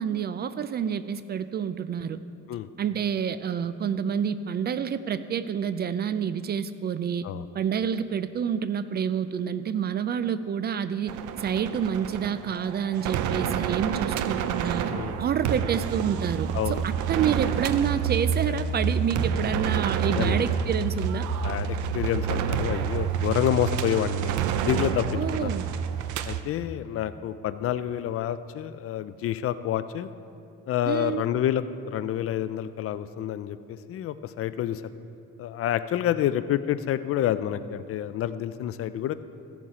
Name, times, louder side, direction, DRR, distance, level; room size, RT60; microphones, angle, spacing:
voice 1, 0.0-2.2 2.8-7.3 7.5-14.9 15.2-21.3 25.1-25.7 30.9-31.2, right 8 dB, 35° right, 13 dB, 0.4 m, -28 dB
sound 1, 11.1-26.4, right 7 dB, 80° right, 0.7 m, -28 dB
voice 2, 14.8-15.2 16.5-16.8 20.1-20.4 21.4-25.1 25.3-25.5 26.2-30.1 30.7-34.8 35.4-39.1, left 11 dB, 50° left, 13 dB, 0.4 m, -28 dB
15.0 x 7.1 x 4.9 m, 2.6 s
cardioid pair, 135°, 30 cm